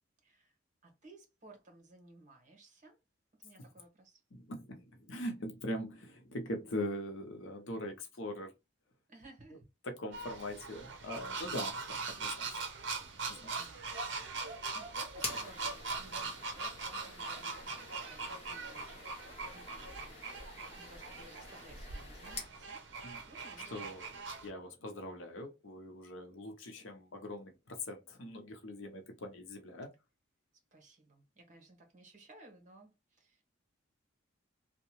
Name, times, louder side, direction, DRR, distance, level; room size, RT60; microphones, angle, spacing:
voice 1, 0.2-0.6 0.8-3.0 3.4-4.2 9.1-9.7 13.5-13.9 14.5-17.6 17.9-19.1 19.4-22.8 23.2-24.0 30.7-33.4, right 2 dB, 35° right, 0.9 m, -58 dB
voice 2, 4.3-8.5 9.8-12.6 13.3-13.5 23.0-23.2 23.7-24.1 24.4-29.9, left 1 dB, 75° left, 0.7 m, -42 dB
sound 1, 10.1-24.5, right 4 dB, 60° right, 0.6 m, -41 dB
sound 2, 15.1-22.6, left 4 dB, 30° left, 0.7 m, -48 dB
2.7 x 2.2 x 2.9 m
head